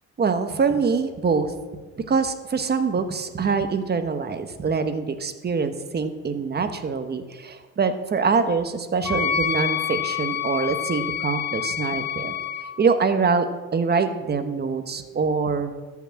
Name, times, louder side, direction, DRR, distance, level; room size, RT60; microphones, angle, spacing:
voice 1, 0.2-1.5 2.1-12.4 12.8-15.8, right 5 dB, 35° right, 9 dB, 1.2 m, -24 dB
Wind instrument woodwind instrument, 9.0-12.7, left 8 dB, 65° left, 2.3 m, -27 dB
13.5 x 6.1 x 7.3 m, 1.4 s
cardioid pair, 90°, 30 cm